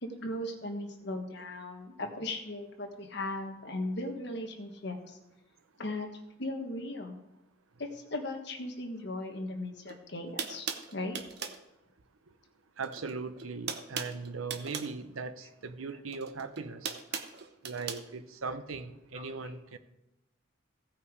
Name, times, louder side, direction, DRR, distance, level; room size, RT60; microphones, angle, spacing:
voice 1, 0.0-5.2 5.8-6.1 6.4-7.2 7.8-10.7 10.9-11.2 19.1-19.5, left 1 dB, 55° left, 4 dB, 1.4 m, -37 dB
sound 1, 9.9-10.0 10.4-11.6 12.8-13.1 13.4-14.9 16.1-18.0, right 6 dB, 50° right, 0.8 m, -38 dB
voice 2, 12.8-16.9 17.6-19.8, right 4 dB, 85° right, 11 dB, 0.8 m, -39 dB
15.5 x 5.8 x 4.8 m, 0.96 s
head